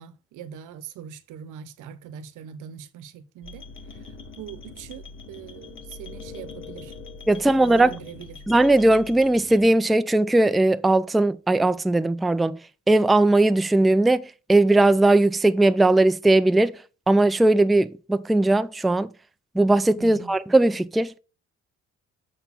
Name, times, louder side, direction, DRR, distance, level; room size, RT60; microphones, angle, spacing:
voice 1, 0.0-3.7 4.4-6.9 7.3-8.4 20.0-20.3, right 9 dB, 90° right, 0.8 m, -42 dB
sound 1, 3.4-9.7, left 4 dB, 40° left, 1.1 m, -42 dB
voice 2, 7.3-7.9 8.5-12.6 12.9-16.8 17.1-19.1 19.6-21.1, right 2 dB, ahead, 0.3 m, -19 dB
6.7 x 4.0 x 5.7 m
cardioid pair, 90°, 30 cm